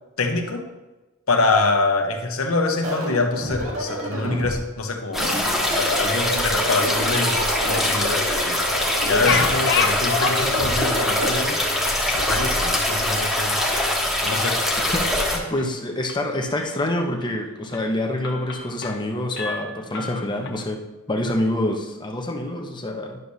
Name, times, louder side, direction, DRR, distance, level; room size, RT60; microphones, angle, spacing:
voice 1, 0.2-0.6 1.3-8.6 9.0-11.6 12.1-13.6 14.2-14.6, left 3 dB, 80° left, 4 dB, 1.1 m, -25 dB
sound 1, 2.8-4.6 5.1-6.2 6.7-7.9 8.6-9.9 10.5-11.3, right 1 dB, 75° right, 2.0 m, -31 dB
sound 2, 5.1-15.4, left 1 dB, ahead, 1.3 m, -23 dB
sound 3, 9.0-11.0 11.4-11.5 11.9-14.0 14.3-14.6 15.0-15.7 16.1-16.8 17.2-17.4 17.7-17.9 18.2-19.1 19.4-20.5, left 5 dB, 60° left, 0.9 m, -29 dB
voice 2, 14.9-20.8 21.1-23.2, left 1 dB, 20° left, 2 dB, 0.9 m, -26 dB
11.0 x 6.4 x 2.8 m, 1.1 s
head